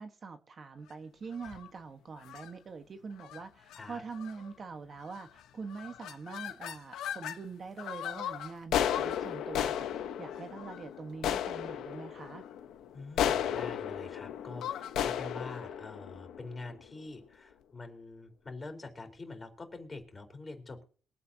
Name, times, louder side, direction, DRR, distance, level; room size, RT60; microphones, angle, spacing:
voice 1, 0.0-12.4, right 5 dB, 45° right, 1.4 m, -44 dB
sound 1, 1.3-1.7 2.2-2.5 3.2-3.4 3.7-3.8 4.1-4.5 5.1-5.4 5.7-7.4 7.8-17.0, left 10 dB, 85° left, 1.2 m, -35 dB
voice 2, 12.9-20.9, left 3 dB, 25° left, 4.0 m, -45 dB
22.5 x 8.6 x 2.9 m
cardioid pair, 90°, 0 cm